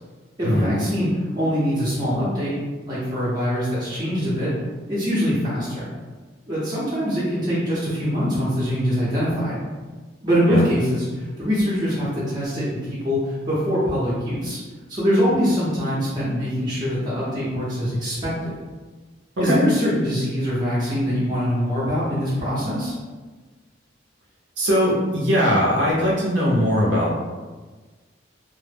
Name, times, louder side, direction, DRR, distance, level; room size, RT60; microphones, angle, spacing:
voice 1, 0.4-2.6 2.9-4.5 4.9-5.9 6.5-9.6 10.2-14.6 14.9-18.6 19.4-22.9, equal, 20° right, -10 dB, 0.6 m, -23 dB
voice 2, 24.6-27.1, equal, 65° right, -5 dB, 0.6 m, -20 dB
2.0 x 2.0 x 3.2 m, 1.3 s
head